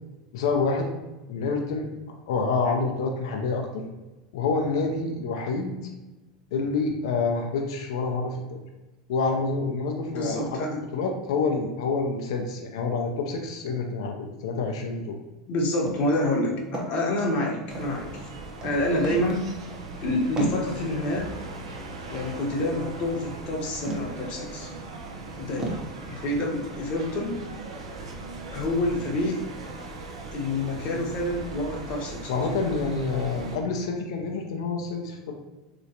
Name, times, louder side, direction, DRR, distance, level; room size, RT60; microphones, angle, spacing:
voice 1, 0.3-0.9 1.3-1.9 2.3-3.8 4.3-5.7 6.5-8.6 9.1-15.2 32.3-35.3, left 4 dB, 70° left, 2 dB, 0.5 m, -27 dB
voice 2, 10.0-10.8 15.5-18.3 18.6-19.5 20.0-21.3 22.1-24.7 25.4-27.4 28.5-29.5 30.3-32.6, left 1 dB, 50° left, 0 dB, 0.9 m, -28 dB
sound 1, 15.9-16.1 16.3-17.4 17.7-18.3 18.6-18.8 19.0-19.5 19.7-19.9 20.4-20.6 23.0-23.1 23.8-24.3 24.8-24.9 25.6-25.9, right 2 dB, 30° right, 0.7 m, -34 dB
sound 2, 17.7-33.6, right 3 dB, 85° right, 0.5 m, -39 dB
3.2 x 2.9 x 2.7 m, 1.1 s
hypercardioid pair, 90°, 3 cm